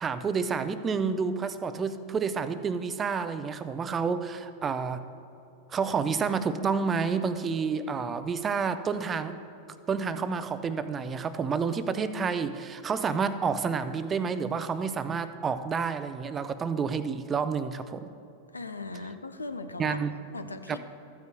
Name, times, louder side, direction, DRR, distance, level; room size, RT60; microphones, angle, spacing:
voice 1, 0.0-5.0 5.7-9.4 9.9-18.1 19.8-20.1 20.7-20.8, right 5 dB, 20° right, 11 dB, 0.5 m, -29 dB
voice 2, 18.5-20.0 20.3-20.8, left 3 dB, 80° left, 9 dB, 0.5 m, -38 dB
14.5 x 9.3 x 2.3 m, 2.9 s
figure-of-eight pair, 90°, 0 cm